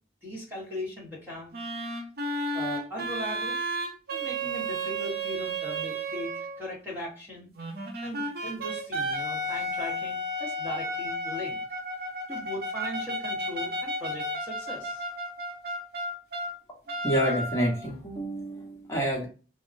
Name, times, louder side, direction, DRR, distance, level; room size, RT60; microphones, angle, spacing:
voice 1, 0.2-1.5 2.5-3.6 4.1-7.5 8.0-11.6 12.3-15.0, left 1 dB, 10° right, -4 dB, 0.9 m, -38 dB
sound 1, 1.5-6.7 7.6-16.5 16.9-17.9, right 1 dB, 55° right, 0.6 m, -33 dB
voice 2, 17.0-19.3, equal, 15° left, -2 dB, 0.9 m, -28 dB
3.5 x 2.0 x 2.5 m, 0.35 s
head